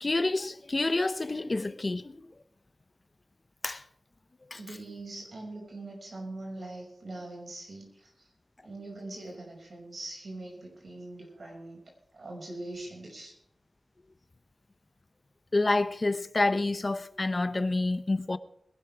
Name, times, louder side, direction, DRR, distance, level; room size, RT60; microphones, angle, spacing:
voice 1, 0.0-2.3 3.6-3.8 4.5-4.6 15.5-18.4, left 2 dB, 45° left, 0.8 m, -28 dB
voice 2, 4.5-8.3 8.6-13.4, right 2 dB, 70° right, 6.1 m, -42 dB
21.0 x 12.0 x 3.5 m
cardioid pair, 55°, 0 cm